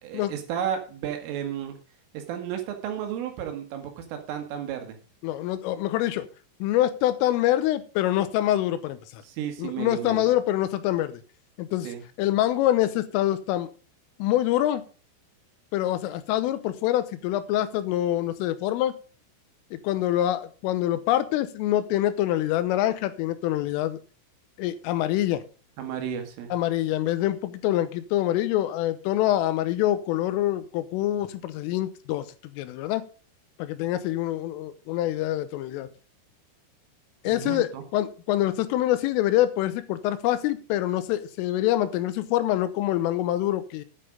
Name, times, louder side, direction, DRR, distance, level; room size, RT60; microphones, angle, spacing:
voice 1, 0.0-1.8 2.1-5.0 9.2-10.3 11.8-12.0 25.8-26.5 37.3-37.8, right 9 dB, 80° right, 5 dB, 4.2 m, -33 dB
voice 2, 5.2-6.3 6.6-9.2 9.6-11.2 11.6-11.9 12.2-13.7 14.2-14.8 15.7-18.9 19.7-24.0 24.6-25.4 26.5-32.3 32.5-33.1 33.6-35.9 37.3-43.9, left 13 dB, 85° left, 12 dB, 3.6 m, -25 dB
10.0 x 8.6 x 5.1 m, 0.36 s
omnidirectional pair, 5.7 m